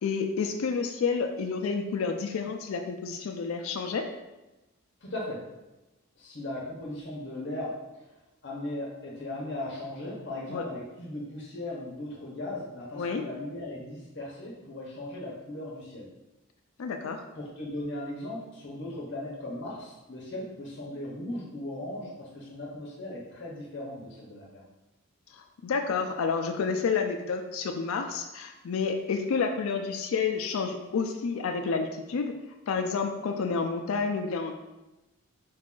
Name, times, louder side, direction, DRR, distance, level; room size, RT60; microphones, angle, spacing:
voice 1, 0.0-4.0 10.5-10.6 12.9-13.2 16.8-17.2 25.3-32.3 32.7-34.5, left 5 dB, 80° left, 4 dB, 0.4 m, -29 dB
voice 2, 5.0-5.5 6.2-8.1 8.4-16.1 17.4-24.6, left 1 dB, 55° left, -4 dB, 0.8 m, -38 dB
4.8 x 2.4 x 3.6 m, 1.0 s
head